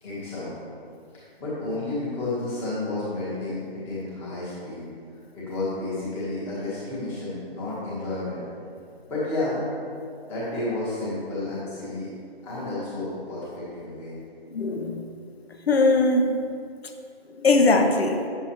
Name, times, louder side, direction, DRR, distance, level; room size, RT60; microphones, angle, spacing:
voice 1, 0.0-0.5 1.1-4.8 5.3-8.4 9.1-9.6 10.2-12.1 12.4-14.1, left 2 dB, 5° left, -9 dB, 1.1 m, -31 dB
voice 2, 14.5-15.0 15.7-16.3 17.4-18.3, left 3 dB, 75° left, 5 dB, 0.9 m, -20 dB
8.1 x 7.0 x 2.9 m, 2.4 s
hypercardioid pair, 160°, 31 cm